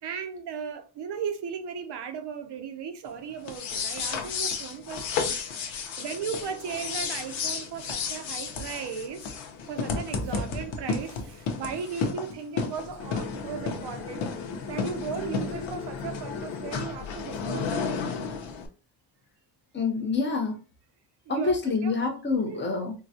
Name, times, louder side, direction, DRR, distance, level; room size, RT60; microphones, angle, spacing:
voice 1, 0.0-5.4 6.0-14.2 14.7-18.1 21.3-21.9 22.4-22.7, right 6 dB, 60° right, 0.7 m, -36 dB
sound 1, 3.4-18.7, left 5 dB, 85° left, 0.8 m, -32 dB
voice 2, 19.7-20.6 21.3-22.9, left 4 dB, 25° left, 0.7 m, -27 dB
3.8 x 2.2 x 2.7 m
wide cardioid pair, 165°, 46 cm